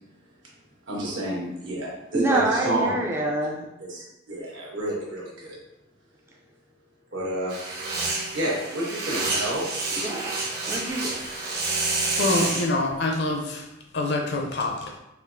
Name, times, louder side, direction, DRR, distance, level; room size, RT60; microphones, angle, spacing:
voice 1, 0.9-3.0 3.8-5.6 7.1-7.6 8.3-9.6, right 1 dB, 80° right, -5 dB, 1.2 m, -29 dB
voice 2, 2.1-3.7 10.0-11.1, right 1 dB, 15° right, -2 dB, 0.3 m, -26 dB
sound 1, 7.5-12.7, right 3 dB, 55° right, 0.8 m, -28 dB
voice 3, 12.2-13.6 13.9-14.8, left 2 dB, 60° left, 2 dB, 0.5 m, -25 dB
4.4 x 2.4 x 2.5 m, 0.93 s
head